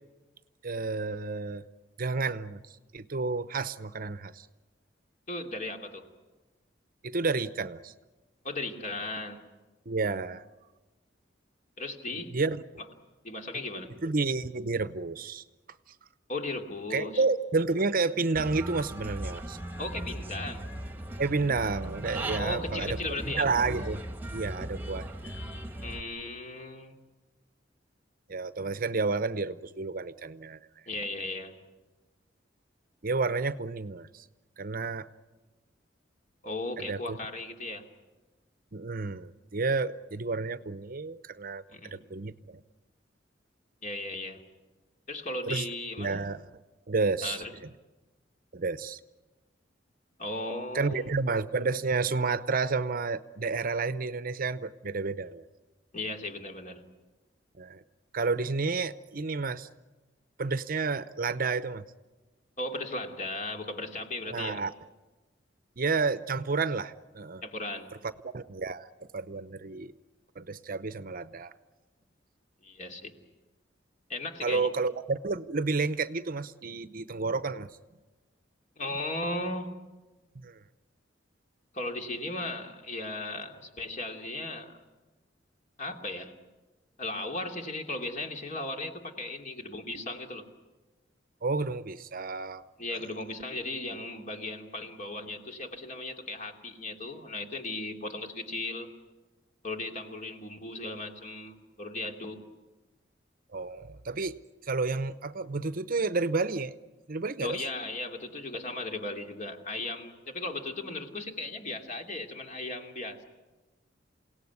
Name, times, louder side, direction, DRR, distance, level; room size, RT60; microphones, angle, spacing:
voice 1, 0.6-1.6 2.0-2.6 2.9-4.5 7.0-7.9 9.9-10.5 12.1-12.6 14.0-15.4 16.9-19.6 21.2-24.0 24.3-25.4 28.3-30.6 33.0-34.2 34.6-35.1 36.8-37.2 38.7-42.6 45.5-45.7 46.0-46.4 46.9-47.4 48.5-49.0 50.7-55.4 57.6-57.8 58.1-59.7 60.4-61.8 64.2-64.7 65.8-67.4 68.0-69.9 70.4-71.5 74.4-77.8 80.3-80.6 91.4-92.6 92.9-93.0 103.5-104.3 104.6-106.8 107.1-107.6, right 4 dB, 50° right, 13 dB, 0.8 m, -30 dB
voice 2, 5.3-6.1 8.4-9.4 11.8-12.4 13.2-13.9 16.3-17.2 19.8-20.7 22.4-23.5 25.8-27.0 30.9-31.6 36.4-37.9 41.7-42.0 43.8-44.4 45.1-46.2 47.2-47.5 50.2-51.1 55.9-56.8 62.6-64.6 67.4-67.9 72.6-73.1 74.1-74.7 78.8-79.7 81.7-84.8 85.8-86.3 87.0-90.5 92.8-98.9 99.6-102.4 107.4-113.2, left 2 dB, 45° left, 3 dB, 2.8 m, -36 dB
Human voice / Bird, 18.3-26.0, right 1 dB, 10° right, 1.5 m, -38 dB
28.5 x 18.0 x 9.6 m, 1.2 s
head